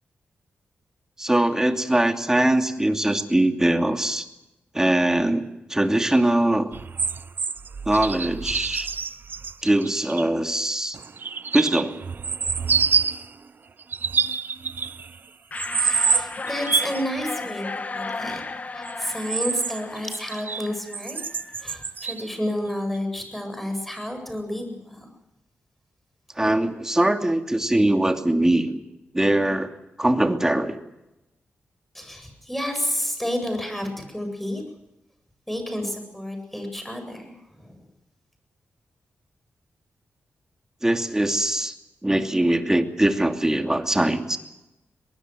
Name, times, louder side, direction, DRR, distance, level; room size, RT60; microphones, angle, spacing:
voice 1, 1.2-4.3 4.7-5.4 5.7-6.7 7.9-8.9 9.6-11.0 11.5-12.0 26.4-28.8 29.1-29.7 30.0-30.8 40.8-41.8 42.0-44.4, right 1 dB, 15° right, 5 dB, 2.7 m, -21 dB
sound 1, 6.7-10.3 10.9-13.3 13.8-15.2 15.6-17.0 18.9-20.7 20.9-22.3 22.9-23.0, right 5 dB, 55° right, 0.8 m, -27 dB
sound 2, 15.5-21.0, left 3 dB, 40° left, 1.7 m, -34 dB
voice 2, 15.8-17.7 17.9-18.4 18.7-25.1 31.9-34.6 35.5-37.3 37.6-37.8, equal, 5° left, 6 dB, 8.0 m, -30 dB
23.5 x 20.5 x 7.9 m, 0.94 s
cardioid pair, 80°, 4 cm